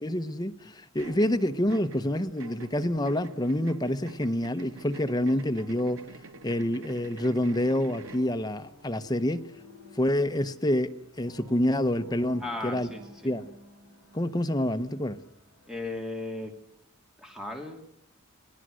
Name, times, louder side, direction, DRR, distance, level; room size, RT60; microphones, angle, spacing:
voice 1, 0.0-6.0 6.4-9.5 9.9-10.9 11.2-12.9 13.2-13.4 14.1-15.2, left 1 dB, 20° left, 0.9 m, -27 dB
sound 1, 1.0-8.3, right 3 dB, 85° right, 1.6 m, -47 dB
sound 2, 1.1-16.4, left 7 dB, 60° left, 8.0 m, -59 dB
sound 3, 8.2-15.9, right 1 dB, 60° right, 6.8 m, -54 dB
voice 2, 12.4-13.3 15.7-16.5 17.2-17.8, left 2 dB, 5° right, 2.8 m, -36 dB
29.0 x 20.5 x 6.4 m
head